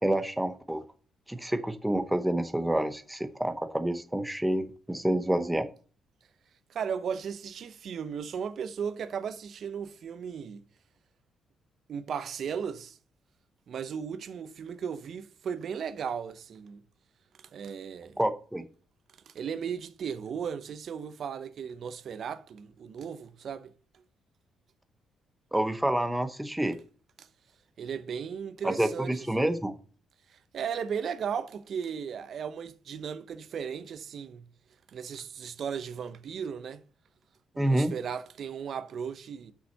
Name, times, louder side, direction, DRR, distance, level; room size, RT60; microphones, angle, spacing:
voice 1, 0.0-0.8 1.3-5.7 18.2-18.7 25.5-26.8 28.6-29.7 37.6-37.9, right 1 dB, 5° right, 0.8 m, -28 dB
voice 2, 6.7-10.7 11.9-13.0 13.7-16.8 17.4-18.2 19.3-23.7 27.2-27.3 27.8-29.5 30.3-34.5 34.9-36.8 37.5-39.5, right 7 dB, 60° right, 0.7 m, -36 dB
6.3 x 5.6 x 6.5 m
cardioid pair, 90°, 0 cm